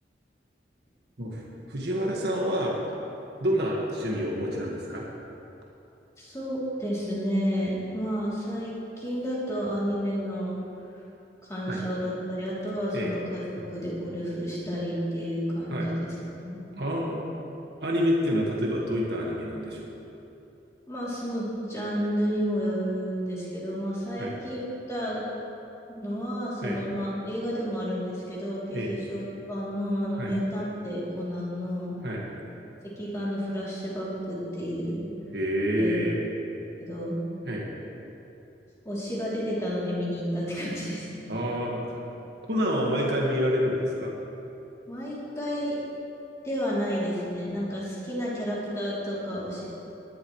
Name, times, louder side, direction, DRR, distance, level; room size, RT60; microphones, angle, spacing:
voice 1, 1.7-2.8 3.4-5.0 11.6-11.8 12.9-13.1 13.6-13.7 15.7-15.9 16.8-17.3 17.8-19.9 24.2-24.3 26.6-26.8 28.7-28.9 30.2-30.3 32.0-32.2 35.3-36.2 37.5-37.6 41.3-42.0 42.5-44.1, equal, 65° right, -3 dB, 1.7 m, -27 dB
voice 2, 6.2-10.6 11.4-16.6 20.9-25.2 25.9-29.2 29.5-32.0 33.0-35.1 35.7-35.9 36.8-37.2 38.8-41.2 44.9-45.7 46.4-49.6, equal, 15° left, -8 dB, 3.1 m, -31 dB
19.0 x 11.0 x 3.2 m, 2.9 s
head